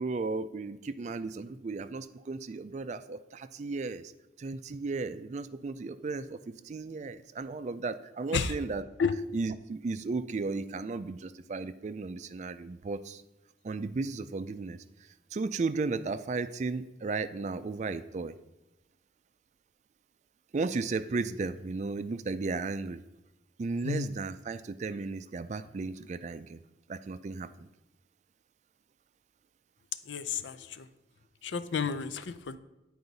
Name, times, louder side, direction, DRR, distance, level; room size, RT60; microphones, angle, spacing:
voice 1, 0.0-4.1 4.4-8.8 9.3-13.2 13.6-14.8 15.3-18.3 20.5-23.0 23.6-26.6 26.9-27.7, right 3 dB, 40° right, 12 dB, 0.3 m, -35 dB
voice 2, 8.3-8.7 9.0-9.2 23.8-24.1 30.1-30.9 31.4-32.6, left 5 dB, 80° left, 12 dB, 0.5 m, -32 dB
9.6 x 4.7 x 4.0 m, 1.0 s
head